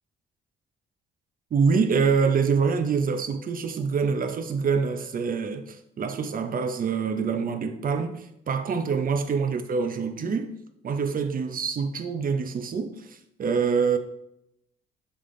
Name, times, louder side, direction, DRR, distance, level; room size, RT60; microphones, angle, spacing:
voice 1, 1.5-10.6 10.8-14.0, right 5 dB, 45° right, 0.7 m, -25 dB
7.1 x 3.5 x 3.8 m
cardioid pair, 90°, 20 cm